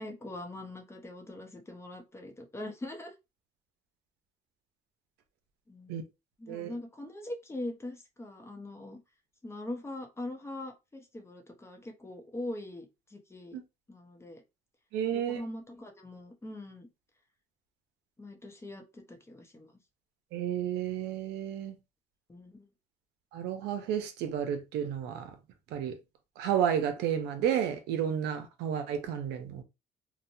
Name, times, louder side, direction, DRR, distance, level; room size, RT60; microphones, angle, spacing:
voice 1, 0.0-3.1 5.7-6.0 6.4-9.0 9.4-13.6 13.9-14.4 15.1-16.9 18.2-19.7 22.3-22.7, left 1 dB, 15° left, 0.7 m, -42 dB
voice 2, 14.9-15.4 20.3-21.8 23.3-25.3 25.7-26.0 26.4-29.6, right 9 dB, 85° right, 0.6 m, -31 dB
2.9 x 2.1 x 2.6 m
cardioid pair, 110°, 17 cm